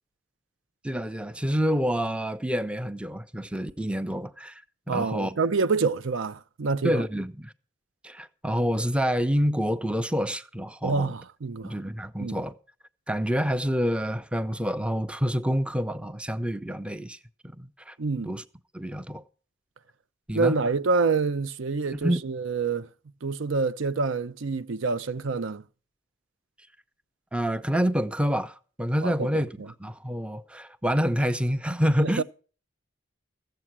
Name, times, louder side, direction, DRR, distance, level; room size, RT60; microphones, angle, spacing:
voice 1, 0.8-5.4 6.8-7.5 8.0-11.1 11.6-12.6 13.1-17.2 17.4-18.0 18.3-18.4 18.7-19.2 20.3-20.6 22.0-22.3 27.3-32.2, equal, 5° right, 0.6 m, -27 dB
voice 2, 4.9-7.0 10.8-11.7 12.2-12.4 18.0-18.4 20.3-22.9 23.2-25.6 29.0-29.4 32.0-32.2, right 4 dB, 85° right, 0.6 m, -27 dB
15.0 x 7.7 x 6.0 m
head